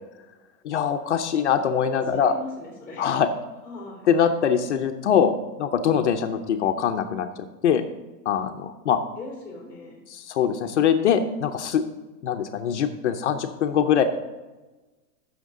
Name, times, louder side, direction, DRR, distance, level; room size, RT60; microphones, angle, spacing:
voice 1, 0.6-2.3 3.0-3.3 4.1-7.3 7.6-7.8 8.3-9.0 10.1-11.8 12.2-14.0, left 8 dB, 45° left, 7 dB, 0.6 m, -23 dB
voice 2, 1.9-3.1 3.6-4.1 9.2-10.0, left 3 dB, 5° left, -4 dB, 3.1 m, -40 dB
14.5 x 6.5 x 3.7 m, 1.2 s
supercardioid pair, 175°, 48 cm